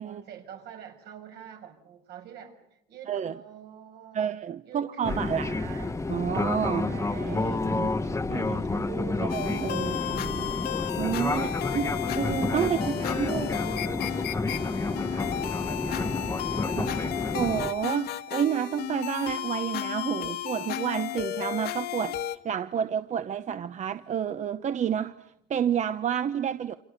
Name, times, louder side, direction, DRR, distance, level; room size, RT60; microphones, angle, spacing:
voice 1, 0.0-4.3 4.6-6.0 6.8-7.7 8.4-9.4 11.3-11.6 12.6-14.1 14.9-17.2, right 8 dB, 75° right, 4 dB, 6.4 m, -45 dB
voice 2, 4.1-5.5 6.1-6.9 7.3-7.9 8.3-8.7 9.3-10.5 11.0-11.5 11.7-13.5 16.8-16.9 17.3-26.8, right 8 dB, 45° right, 11 dB, 0.9 m, -30 dB
Fixed-wing aircraft airplane, 5.0-17.7, left 3 dB, 15° left, 1.2 m, -30 dB
sound 1, 9.3-22.4, left 12 dB, 70° left, 1.7 m, -34 dB
28.5 x 27.5 x 6.7 m, 0.81 s
cardioid pair, 110°, 17 cm